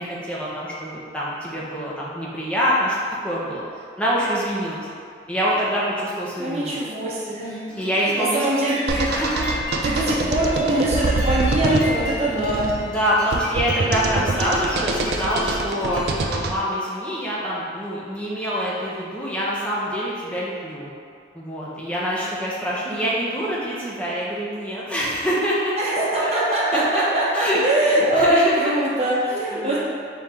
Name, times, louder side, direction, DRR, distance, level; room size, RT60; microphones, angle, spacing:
voice 1, 0.0-2.9 3.2-3.6 4.0-4.9 5.3-6.8 7.7-8.4 9.1-9.6 12.9-20.9 21.3-25.7 26.2-26.3 26.7-27.0 27.3-27.6 27.9-28.7 29.5-29.8, equal, 5° left, -7 dB, 0.7 m, -25 dB
voice 2, 6.4-7.6 8.0-9.1 9.8-12.7 22.9-23.1 25.8-29.8, right 1 dB, 35° right, -7 dB, 0.8 m, -22 dB
sound 1, 7.4-16.3, left 2 dB, 60° left, 1.2 m, -35 dB
sound 2, 8.9-16.6, right 2 dB, 65° right, 0.3 m, -25 dB
4.3 x 3.2 x 3.5 m, 2.3 s
head